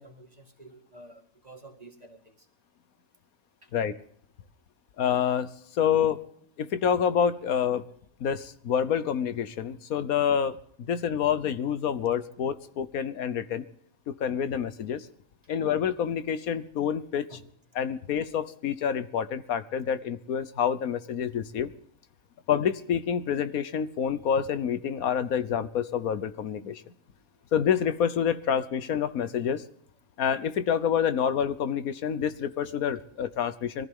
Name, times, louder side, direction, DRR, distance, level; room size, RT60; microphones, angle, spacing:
voice 1, 0.0-2.5 3.6-3.7 17.3-17.5, right 1 dB, 30° right, 3 dB, 2.4 m, -50 dB
voice 2, 5.0-6.2 6.6-7.9 8.2-13.7 14.1-15.1 15.5-17.3 17.7-21.7 22.5-26.8 27.5-29.6 30.2-33.9, left 8 dB, 90° left, 13 dB, 1.4 m, -27 dB
22.0 x 15.0 x 3.8 m, 0.62 s
omnidirectional pair, 1.5 m